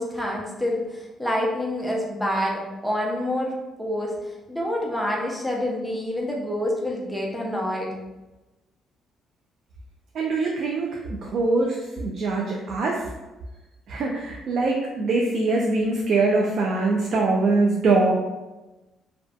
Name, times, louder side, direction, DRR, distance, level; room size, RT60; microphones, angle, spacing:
voice 1, 0.0-4.1 4.5-7.9, left 1 dB, 5° left, -2 dB, 0.6 m, -27 dB
voice 2, 10.1-13.1 13.9-18.1, right 3 dB, 60° right, -1 dB, 0.3 m, -23 dB
2.5 x 2.3 x 2.3 m, 1.1 s
cardioid pair, 100°, 0 cm